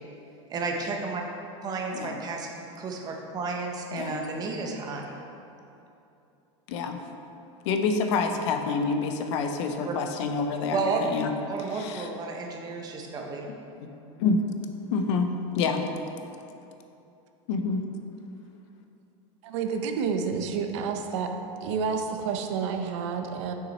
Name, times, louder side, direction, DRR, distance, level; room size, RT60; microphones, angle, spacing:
voice 1, 0.5-1.2 1.6-2.5 2.8-5.2 9.8-9.9 10.7-11.0 11.5-13.5, right 4 dB, 25° right, 1 dB, 0.8 m, -32 dB
voice 2, 3.9-4.2 6.7-7.0 7.6-11.3 11.7-12.1 13.8-13.9 14.2-14.4 14.9-15.3 15.5-15.8 17.5-17.8, left 4 dB, 65° left, 6 dB, 0.7 m, -27 dB
voice 3, 19.4-21.3 21.6-23.5, right 6 dB, 70° right, 5 dB, 0.7 m, -29 dB
6.2 x 6.1 x 4.1 m, 2.8 s
supercardioid pair, 150°, 16 cm